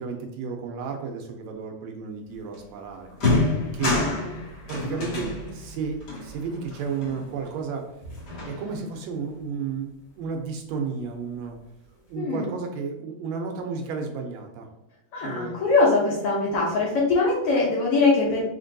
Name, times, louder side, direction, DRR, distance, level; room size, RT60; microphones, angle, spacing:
voice 1, 0.0-3.1 3.7-4.0 4.7-7.8 8.5-9.9 10.2-11.6 12.1-14.7 15.2-15.6, right 5 dB, 80° right, 3 dB, 1.8 m, -32 dB
sound 1, 2.5-2.7 3.1-7.7 8.0-9.0, left 2 dB, 45° left, 1.7 m, -29 dB
voice 2, 3.8-4.3 12.1-12.5 15.1-18.4, left 3 dB, 65° left, -4 dB, 1.5 m, -22 dB
4.4 x 4.3 x 2.6 m, 0.88 s
omnidirectional pair, 3.3 m